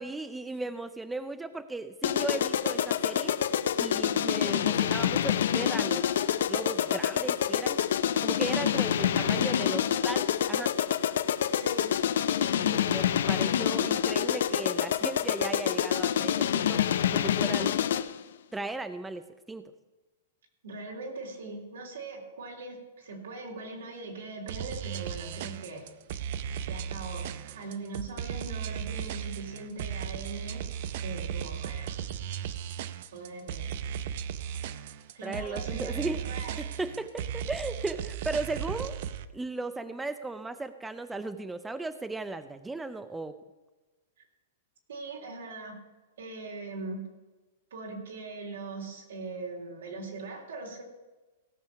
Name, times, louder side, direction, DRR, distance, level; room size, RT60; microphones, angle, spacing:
voice 1, 0.0-3.4 3.8-6.1 6.5-7.8 8.2-10.7 12.6-16.8 17.1-17.8 18.5-19.6 35.2-39.0 39.3-43.4, right 3 dB, 10° right, 11 dB, 0.5 m, -36 dB
sound 1, 2.0-18.2, left 9 dB, 70° left, 0.6 m, -27 dB
voice 2, 9.0-9.7 11.5-11.9 20.6-25.8 26.7-30.7 31.0-32.0 33.1-33.7 35.1-36.8 44.9-45.8 46.2-47.0 47.7-50.8, right 3 dB, 80° right, 1 dB, 3.5 m, -41 dB
sound 2, 24.5-39.3, right 9 dB, 55° right, 0.6 m, -36 dB
16.5 x 6.7 x 5.7 m, 1.2 s
hypercardioid pair, 145°, 0 cm